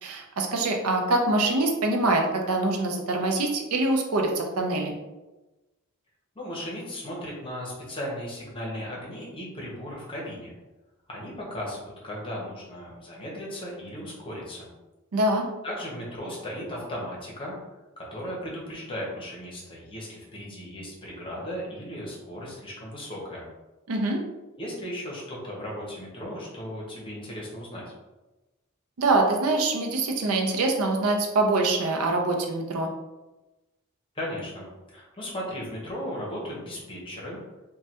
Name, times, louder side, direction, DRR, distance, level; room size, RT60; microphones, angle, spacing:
voice 1, 0.0-5.0 15.1-15.5 23.9-24.2 29.0-32.9, right 2 dB, 75° right, 2 dB, 0.5 m, -24 dB
voice 2, 6.3-10.5 11.1-14.7 15.6-17.6 18.0-23.4 24.6-27.8 34.1-37.4, equal, 25° left, -4 dB, 0.8 m, -36 dB
3.1 x 2.2 x 2.8 m, 1.1 s
head